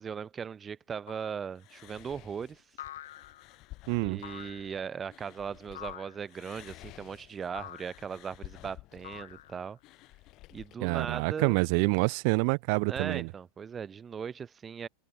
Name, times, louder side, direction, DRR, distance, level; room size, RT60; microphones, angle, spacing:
voice 1, 0.0-2.6 4.0-9.8 10.5-11.6 12.9-14.9, right 7 dB, 20° right, 3.9 m, -38 dB
sound 1, 1.1-1.5 2.8-3.6 4.2-4.8 5.7-6.3 7.5-8.1 9.0-9.8, left 13 dB, 60° left, 6.6 m, -46 dB
sound 2, 1.6-5.9 6.3-10.8, left 18 dB, 40° left, 2.9 m, -52 dB
voice 2, 3.9-4.2 10.8-13.3, right 36 dB, 45° right, 0.6 m, -27 dB
figure-of-eight pair, 90°, 0 cm